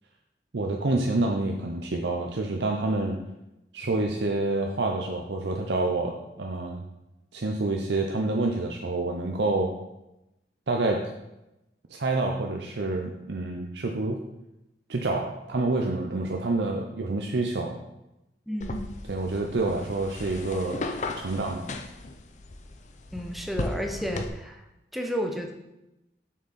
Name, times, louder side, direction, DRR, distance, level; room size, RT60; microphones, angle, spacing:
voice 1, 0.5-3.2 3.7-6.8 7.3-9.7 10.7-11.1 11.9-14.2 14.9-17.8 19.1-20.9 21.2-21.7, right 2 dB, 75° right, 2 dB, 0.7 m, -28 dB
voice 2, 18.5-18.8 23.1-24.6 24.9-25.5, equal, ahead, 3 dB, 0.8 m, -31 dB
sound 1, 18.6-24.3, left 2 dB, 40° left, 0.6 m, -36 dB
7.6 x 6.2 x 4.2 m, 0.93 s
head